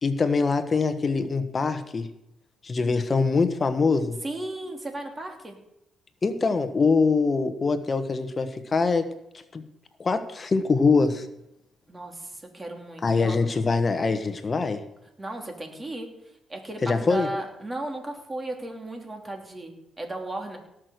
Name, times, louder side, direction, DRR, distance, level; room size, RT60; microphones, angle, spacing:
voice 1, 0.0-2.1 2.6-4.2 6.2-9.1 9.5-9.7 10.0-11.3 13.0-14.8 16.8-17.3, left 4 dB, 35° left, 10 dB, 1.2 m, -23 dB
voice 2, 4.2-5.6 11.9-13.4 15.2-16.1 16.5-20.6, right 1 dB, 20° right, 3 dB, 3.1 m, -35 dB
17.5 x 6.2 x 6.6 m, 0.85 s
cardioid pair, 90°, 0 cm